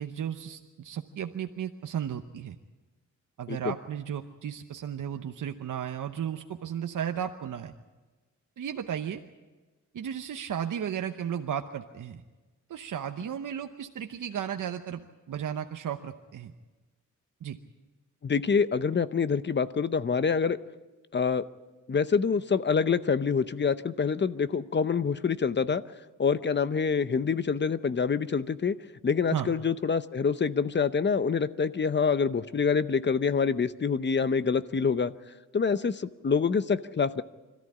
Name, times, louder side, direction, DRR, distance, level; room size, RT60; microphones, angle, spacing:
voice 1, 0.0-2.6 3.4-7.7 8.6-9.2 9.9-12.2 12.7-16.5 17.4-17.6 29.3-29.5, right 9 dB, 80° right, 6 dB, 0.9 m, -34 dB
voice 2, 18.2-20.6 21.1-21.4 21.9-25.8 26.2-28.8 29.0-35.1 35.5-37.2, left 5 dB, 35° left, 13 dB, 0.7 m, -26 dB
25.5 x 14.0 x 8.6 m, 1.2 s
wide cardioid pair, 130°, 31 cm